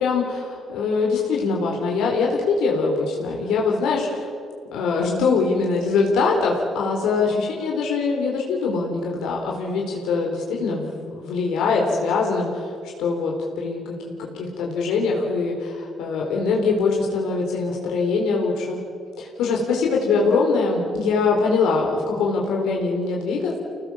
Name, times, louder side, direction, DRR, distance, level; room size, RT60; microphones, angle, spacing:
voice 1, 0.0-4.3 4.7-12.7 13.0-18.8 19.2-23.6, left 4 dB, 90° left, -1 dB, 4.1 m, -23 dB
26.0 x 19.0 x 7.4 m, 2.3 s
cardioid pair, 90°, 0 cm